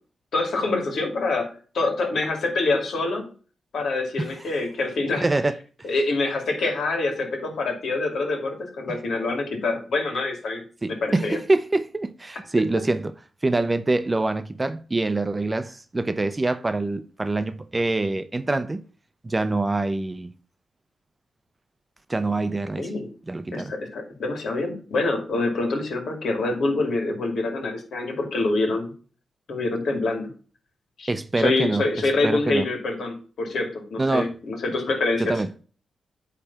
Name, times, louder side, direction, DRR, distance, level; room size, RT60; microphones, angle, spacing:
voice 1, 0.3-3.2 3.7-5.3 5.8-10.6 10.9-11.4 22.8-23.1 23.5-28.9 29.5-30.3 31.0-35.4, left 3 dB, 70° left, 2.3 m, -26 dB
voice 2, 5.2-5.6 8.9-9.0 10.8-13.1 13.4-18.8 19.2-20.3 22.1-22.9 23.3-23.7 31.1-32.6 34.0-34.3 35.2-35.5, right 2 dB, 25° right, 0.7 m, -25 dB
8.8 x 3.4 x 5.8 m
supercardioid pair, 55°, 0 cm